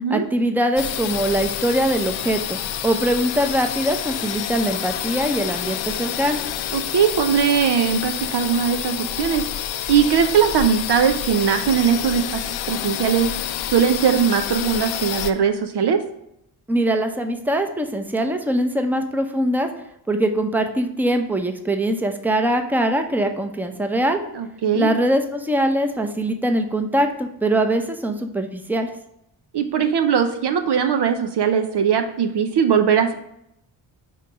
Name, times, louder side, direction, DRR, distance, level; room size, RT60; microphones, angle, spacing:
voice 1, 0.1-6.4 16.7-19.7 20.1-24.2 24.7-28.9, right 1 dB, 5° right, 6 dB, 0.8 m, -22 dB
sound 1, 0.8-15.3, left 11 dB, 65° left, 0.6 m, -28 dB
voice 2, 6.7-9.4 9.9-13.3 13.7-16.0 24.3-24.9 29.5-33.1, right 7 dB, 55° right, 7 dB, 0.8 m, -20 dB
6.7 x 3.1 x 5.0 m, 0.77 s
supercardioid pair, 45°, 48 cm